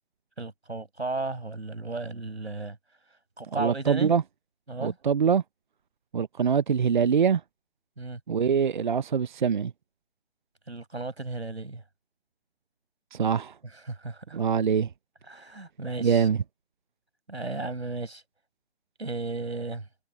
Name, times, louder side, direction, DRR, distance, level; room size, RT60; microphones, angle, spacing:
voice 1, 0.4-2.8 3.4-4.1 4.7-5.0 8.0-8.2 10.7-11.8 13.7-14.4 15.3-16.3 17.3-18.2 19.0-19.9, right 3 dB, 85° right, 5.4 m, -34 dB
voice 2, 3.5-4.2 4.8-5.4 6.1-7.4 8.3-9.7 13.1-13.6 14.3-14.9 16.0-16.4, right 6 dB, 50° right, 0.7 m, -24 dB
figure-of-eight pair, 150°, 32 cm